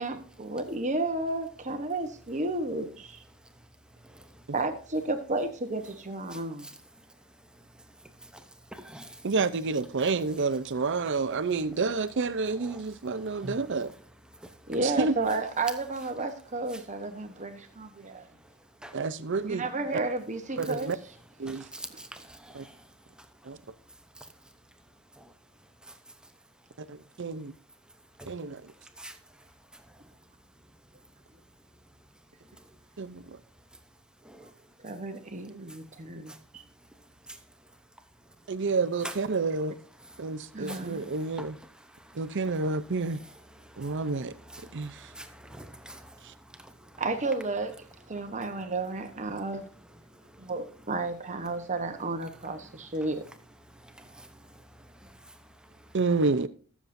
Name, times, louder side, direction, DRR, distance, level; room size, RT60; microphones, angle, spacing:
voice 1, 0.0-3.2 4.5-6.7 14.7-18.3 19.4-20.9 21.5-22.0 34.8-36.6 40.5-41.0 47.0-47.7 48.1-49.7 50.4-53.2, right 2 dB, 35° right, 1.0 m, -32 dB
voice 2, 8.7-9.1 13.4-13.6 18.8-18.9 21.5-22.7 28.2-28.3 29.0-29.1 34.3-34.5 40.7-40.8 43.8-43.9 44.6-46.1 54.0-54.3, right 1 dB, 5° right, 0.8 m, -44 dB
voice 3, 9.2-13.9 14.8-15.1 18.9-19.7 20.6-21.0 21.4-21.6 22.5-22.6 23.4-23.6 26.8-27.5 28.3-28.7 33.0-33.4 38.5-39.8 40.2-41.6 42.1-43.2 43.8-44.3 44.7-45.1 46.2-46.3 55.9-56.5, right 4 dB, 55° right, 0.6 m, -29 dB
20.0 x 7.3 x 2.6 m
head